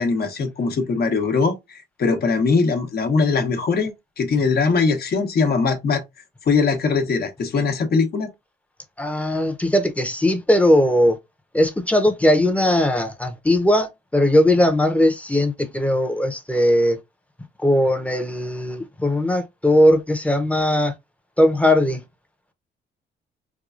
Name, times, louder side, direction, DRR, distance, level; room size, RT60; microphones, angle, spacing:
voice 1, 0.0-6.0 6.5-8.3, left 4 dB, 50° left, 1.1 m, -21 dB
voice 2, 9.0-11.2 11.5-17.0 17.6-20.9 21.4-22.0, left 1 dB, 5° left, 0.8 m, -19 dB
4.7 x 2.3 x 2.5 m
cardioid pair, 90°, 20 cm